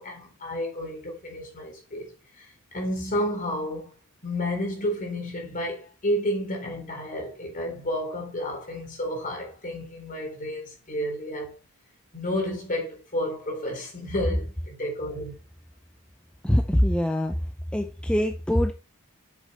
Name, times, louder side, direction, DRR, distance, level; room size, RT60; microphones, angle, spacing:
voice 1, 0.0-3.9 4.2-11.6 12.1-15.3, left 1 dB, 40° left, 3.8 m, -31 dB
voice 2, 16.4-17.4 17.7-18.7, equal, 5° left, 0.6 m, -23 dB
7.9 x 6.8 x 4.2 m
head